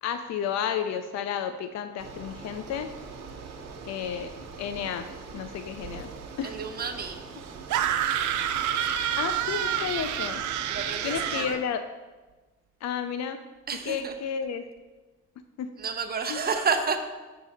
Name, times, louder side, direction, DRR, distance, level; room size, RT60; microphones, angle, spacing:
voice 1, 0.0-2.9 3.9-4.3 4.6-5.1 5.3-6.1 6.4-6.5 9.2-10.4 11.0-11.8 12.8-13.4 13.8-14.6 15.6-15.7 16.3-16.4, left 8 dB, 60° left, 9 dB, 0.5 m, -31 dB
Bicycle, 2.0-11.6, right 4 dB, 60° right, 1.0 m, -42 dB
voice 2, 6.4-7.2 10.7-11.6 13.7-14.1 15.8-17.0, right 5 dB, 30° right, 5 dB, 0.8 m, -30 dB
sound 1, 7.7-11.6, right 10 dB, 75° right, 0.5 m, -28 dB
6.5 x 6.0 x 4.1 m, 1.2 s
cardioid pair, 90°, 30 cm